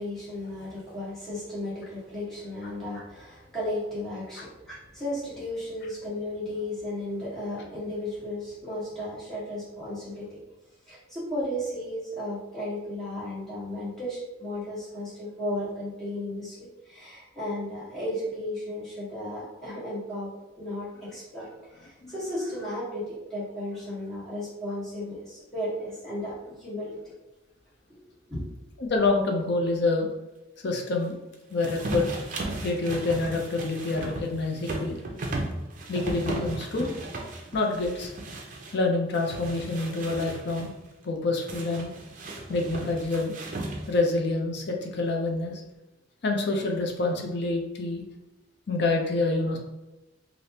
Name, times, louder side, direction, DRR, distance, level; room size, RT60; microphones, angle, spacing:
voice 1, 0.0-10.4 10.9-20.3 20.6-27.0 27.9-28.5, left 1 dB, 5° left, -10 dB, 1.2 m, -34 dB
voice 2, 28.8-30.1 30.6-31.2 31.5-32.1 32.6-35.0 35.9-36.9 37.5-38.1 38.7-40.7 41.0-41.9 42.5-43.4 43.9-45.6 46.2-48.0 48.7-49.6, left 3 dB, 60° left, 2 dB, 0.5 m, -27 dB
sound 1, 31.6-38.8 39.1-40.7 41.5-44.1, right 2 dB, 45° right, 0.5 m, -35 dB
3.3 x 2.5 x 2.8 m, 1.0 s
head